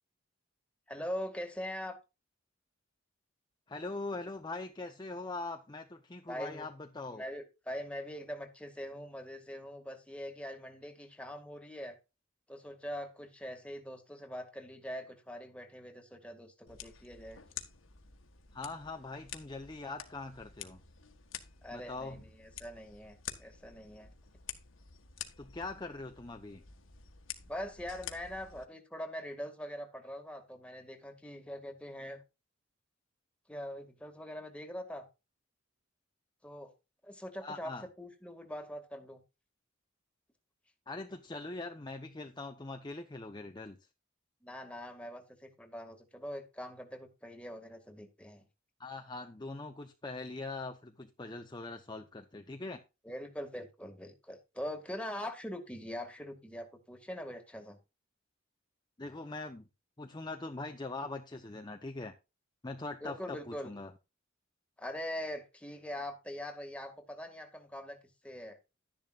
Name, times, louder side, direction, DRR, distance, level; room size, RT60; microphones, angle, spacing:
voice 1, 0.9-2.0 6.3-6.7 7.1-12.0 12.5-17.4 21.6-24.1 27.5-32.2 33.5-35.0 36.4-36.7 37.0-39.2 44.4-48.4 53.0-57.8 63.0-63.7 64.8-68.6, equal, 5° left, 2.0 m, -43 dB
voice 2, 3.7-7.2 18.5-20.8 21.7-22.2 25.4-26.6 37.4-37.9 40.9-43.8 48.8-52.8 59.0-59.7 60.0-62.1 62.6-63.9, left 3 dB, 20° left, 0.8 m, -42 dB
sound 1, 16.7-28.7, left 9 dB, 80° left, 1.7 m, -49 dB
12.5 x 10.5 x 2.5 m
head